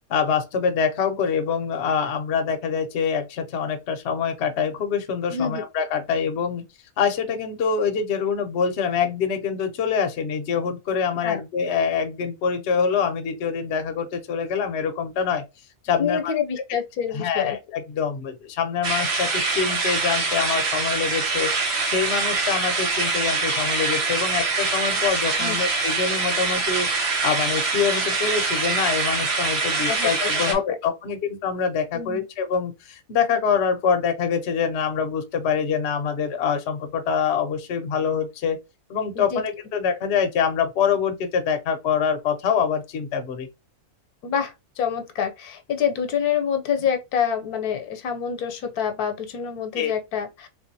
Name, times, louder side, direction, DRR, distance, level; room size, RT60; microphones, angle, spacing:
voice 1, 0.1-6.7 7.0-15.5 15.8-16.3 17.1-21.5 21.8-38.6 38.9-43.5 49.8-49.9, left 6 dB, 55° left, 0.8 m, -25 dB
voice 2, 5.3-5.6 11.2-11.4 16.0-17.6 25.4-25.6 29.9-30.6 31.9-32.2 39.1-39.4 44.2-50.5, left 7 dB, 80° left, 1.1 m, -27 dB
sound 1, 18.8-30.5, right 3 dB, 50° right, 1.1 m, -24 dB
3.6 x 2.6 x 2.6 m
omnidirectional pair, 1.6 m